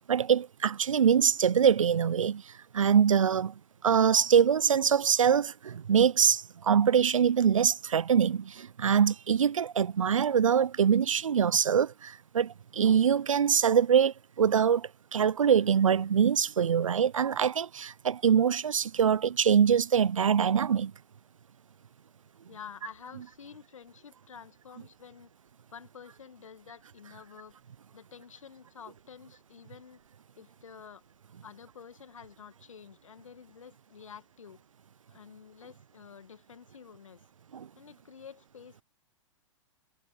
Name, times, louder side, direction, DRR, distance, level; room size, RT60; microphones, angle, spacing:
voice 1, 0.1-2.4 2.7-3.5 3.8-20.9 37.5-37.7, right 7 dB, 80° right, 0.6 m, -24 dB
voice 2, 22.5-25.3 25.7-27.6 27.9-30.0 30.4-31.0 31.4-34.6 35.1-37.2 37.8-38.8, left 7 dB, 80° left, 2.0 m, -49 dB
hypercardioid pair, 110°, 16 cm